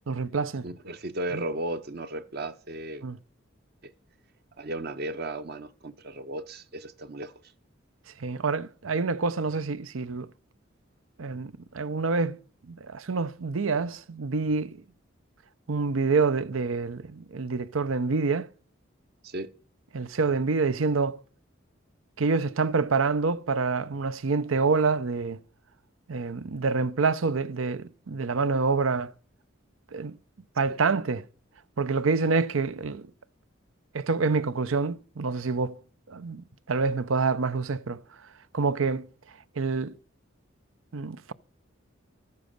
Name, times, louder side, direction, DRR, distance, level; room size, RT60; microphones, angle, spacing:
voice 1, 0.1-0.7 1.3-1.4 3.0-3.2 8.2-10.3 11.2-12.4 12.7-14.8 15.7-18.5 19.9-21.2 22.2-25.4 26.1-29.1 29.9-30.2 30.6-31.2 31.8-33.1 33.9-35.7 36.1-38.0 38.5-39.1 39.6-39.9 40.9-41.3, right 4 dB, 80° right, 0.7 m, -27 dB
voice 2, 0.6-3.0 3.8-3.9 4.6-7.3 19.2-19.5 30.7-30.8, right 1 dB, 50° right, 0.9 m, -35 dB
13.5 x 9.5 x 6.6 m
head